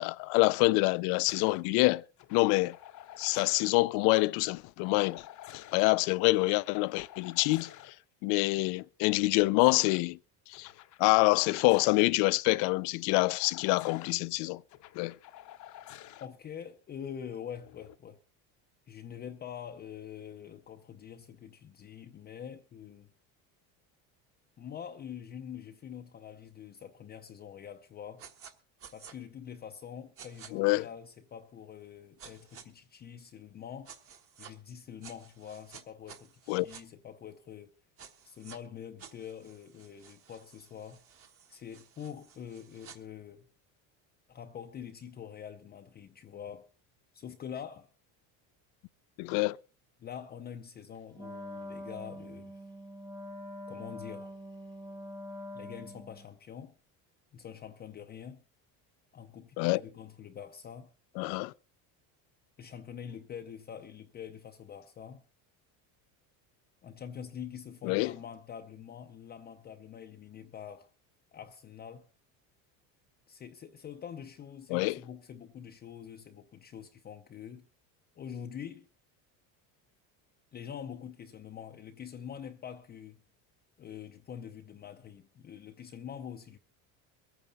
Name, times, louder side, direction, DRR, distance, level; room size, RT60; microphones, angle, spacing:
voice 1, 0.0-2.0 2.3-2.8 3.2-5.2 5.5-7.7 8.2-10.2 10.5-10.7 11.0-14.6 15.0-15.1 30.5-30.9 36.5-36.7 49.2-49.6 59.6-59.8 61.2-61.5 67.8-68.1 74.7-75.0, left 23 dB, 75° left, 0.6 m, -26 dB
sound 1, 1.3-1.6 2.2-3.7 4.8-5.8 6.4-7.9 9.2-10.0 10.5-12.1 13.1-14.1 14.7-16.3 17.6-17.9, left 12 dB, 50° left, 0.9 m, -50 dB
voice 2, 16.2-18.2 18.9-23.1 24.6-28.2 28.9-34.0 34.4-37.7 38.2-41.0 41.5-43.5 44.3-46.7 47.1-47.9 50.0-52.6 53.7-54.3 55.5-56.7 57.3-58.4 59.1-60.9 62.6-65.2 66.8-70.9 71.3-72.1 73.3-77.7 78.2-78.9 80.5-83.2 83.8-86.6, left 8 dB, 25° left, 0.6 m, -45 dB
sound 2, 28.2-28.5 28.8-29.1 30.2-30.5 32.2-32.6 33.8-34.5 35.0-36.8 38.0-38.6 39.0-43.0, right 7 dB, 35° right, 1.4 m, -52 dB
Wind instrument woodwind instrument, 51.1-56.3, equal, 10° right, 1.1 m, -44 dB
23.0 x 9.0 x 4.0 m
cardioid pair, 155°, 38 cm